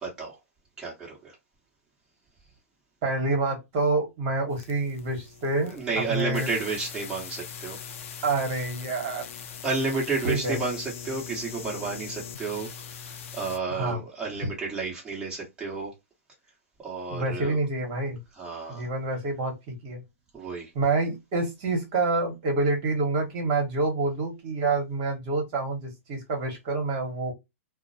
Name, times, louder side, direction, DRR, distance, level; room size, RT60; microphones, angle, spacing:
voice 1, 0.0-0.4 0.8-1.3 5.6-7.8 9.6-12.7 12.9-15.9 16.8-17.6 18.4-18.9 20.3-20.7, right 4 dB, 10° right, 1.1 m, -31 dB
voice 2, 3.0-5.7 6.1-6.5 8.2-9.2 10.2-10.6 13.7-14.0 17.1-18.2 18.7-20.0 20.7-27.3, right 3 dB, 40° right, 1.2 m, -27 dB
sound 1, 4.5-13.6, left 7 dB, 60° left, 0.5 m, -41 dB
2.4 x 2.0 x 2.6 m
hypercardioid pair, 130°, 8 cm